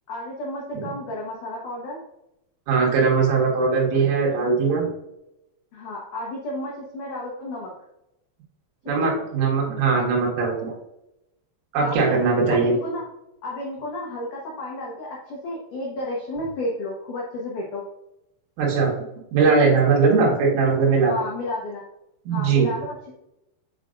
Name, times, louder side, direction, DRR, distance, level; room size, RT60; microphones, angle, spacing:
voice 1, 0.1-2.0 5.7-7.7 9.0-9.1 11.8-12.2 12.5-13.1 13.4-17.8 21.1-21.8 22.3-23.1, left 1 dB, 80° left, -4 dB, 1.8 m, -32 dB
voice 2, 2.7-4.9 8.9-10.7 11.7-12.7 18.6-18.9 19.3-21.1 22.3-22.7, right 4 dB, 90° right, -2 dB, 4.3 m, -20 dB
8.1 x 4.9 x 2.5 m, 0.85 s
omnidirectional pair, 5.5 m